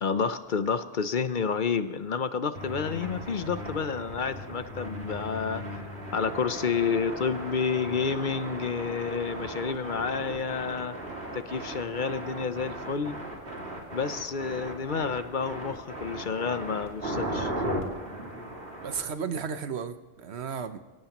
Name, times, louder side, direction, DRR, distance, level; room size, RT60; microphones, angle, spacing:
voice 1, 0.0-11.0 11.3-13.2 13.9-17.5, left 6 dB, 55° left, 11 dB, 0.8 m, -30 dB
sound 1, 2.5-19.0, right 1 dB, 65° right, 2.7 m, -37 dB
voice 2, 18.8-20.8, right 6 dB, 90° right, 10 dB, 1.2 m, -34 dB
24.5 x 17.0 x 3.0 m, 1.1 s
omnidirectional pair, 1.1 m